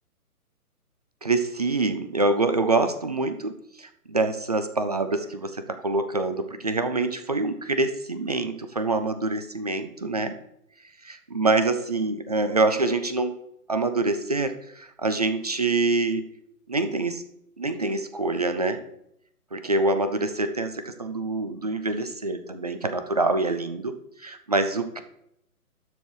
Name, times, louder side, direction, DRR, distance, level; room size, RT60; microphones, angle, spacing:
voice 1, 1.2-3.5 3.8-10.3 11.1-13.3 13.7-16.2 16.7-17.2 17.6-18.8 19.5-23.9 24.2-25.0, right 3 dB, 25° right, 8 dB, 0.5 m, -25 dB
12.0 x 4.6 x 4.8 m, 0.75 s
figure-of-eight pair, 145°, 46 cm